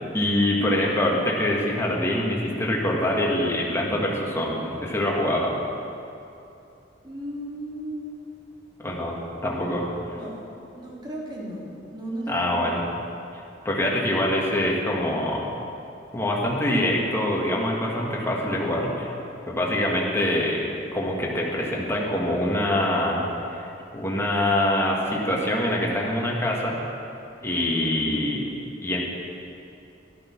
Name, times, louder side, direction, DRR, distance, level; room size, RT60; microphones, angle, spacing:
voice 1, 0.1-5.5 8.8-9.2 9.4-9.9 12.3-12.8 13.6-15.5 16.1-19.1 19.5-20.7 20.9-23.2 23.5-23.7 23.9-26.8 27.4-28.5 28.8-29.1, left 1 dB, 15° left, -3 dB, 2.0 m, -24 dB
voice 2, 7.0-8.1 10.1-11.7 11.9-12.6, right 1 dB, 25° right, -5 dB, 2.9 m, -35 dB
12.5 x 12.0 x 6.2 m, 2.7 s
head